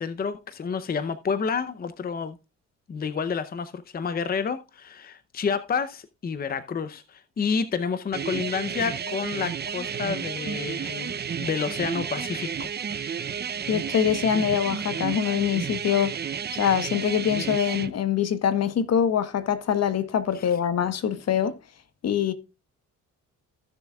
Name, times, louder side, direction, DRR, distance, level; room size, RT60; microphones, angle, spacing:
voice 1, 0.0-2.4 2.9-13.0 20.3-20.5, left 6 dB, 30° left, 0.7 m, -29 dB
sound 1, 8.1-17.9, right 7 dB, 35° right, 0.7 m, -32 dB
voice 2, 13.7-16.2 16.5-21.5 22.0-22.3, left 8 dB, 55° left, 1.2 m, -24 dB
15.5 x 7.1 x 2.3 m
cardioid pair, 90°, 30 cm